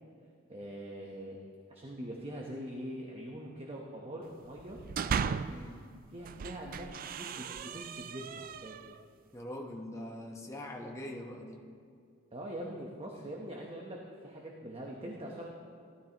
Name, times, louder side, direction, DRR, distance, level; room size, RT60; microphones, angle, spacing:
voice 1, 0.5-1.4 1.7-4.8 6.1-8.8 12.3-15.5, right 1 dB, 30° right, -1 dB, 1.0 m, -43 dB
sound 1, 4.6-5.7 6.2-9.0, right 6 dB, 45° right, 0.3 m, -37 dB
voice 2, 5.5-5.9 9.3-11.6, left 1 dB, 15° left, 0 dB, 1.1 m, -43 dB
17.0 x 12.5 x 3.0 m, 2.3 s
head